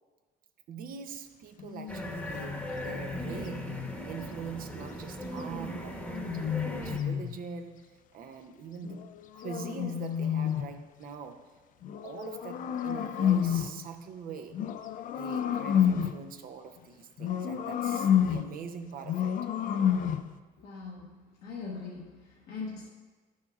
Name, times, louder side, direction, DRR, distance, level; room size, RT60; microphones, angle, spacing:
voice 1, 0.7-7.8 8.1-11.5 12.0-14.6 15.1-19.4, right 6 dB, 60° right, 6 dB, 0.6 m, -43 dB
sound 1, 1.6-4.0 5.6-7.4 8.8-10.8 11.8-13.8 14.5-16.3 17.2-18.6 19.0-20.3, left 9 dB, 50° left, 0.4 m, -30 dB
sound 2, 1.9-7.0, equal, 5° left, 1.0 m, -38 dB
voice 2, 20.6-21.1 21.4-22.9, left 4 dB, 70° left, -4 dB, 1.0 m, -41 dB
10.5 x 6.3 x 2.4 m, 1.3 s
cardioid pair, 110°, 17 cm